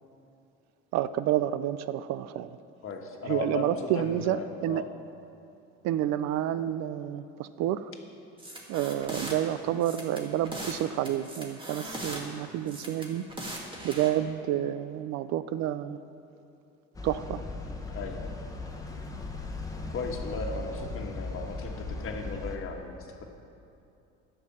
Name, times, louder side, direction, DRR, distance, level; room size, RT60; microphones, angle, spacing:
voice 1, 0.9-2.6 3.2-4.8 5.8-7.9 8.7-13.2 13.8-16.0 17.0-17.4, right 12 dB, 65° right, 14 dB, 0.5 m, -29 dB
voice 2, 2.8-4.9 17.9-18.3 19.9-23.3, left 4 dB, 45° left, 3 dB, 1.5 m, -36 dB
sound 1, 8.4-9.4 9.8-10.8 11.1-12.2 12.7-14.1, right 1 dB, 15° right, 2.2 m, -39 dB
sound 2, 16.9-22.6, left 3 dB, 10° left, 1.3 m, -37 dB
10.0 x 6.8 x 8.5 m, 2.7 s
supercardioid pair, 90°, 29 cm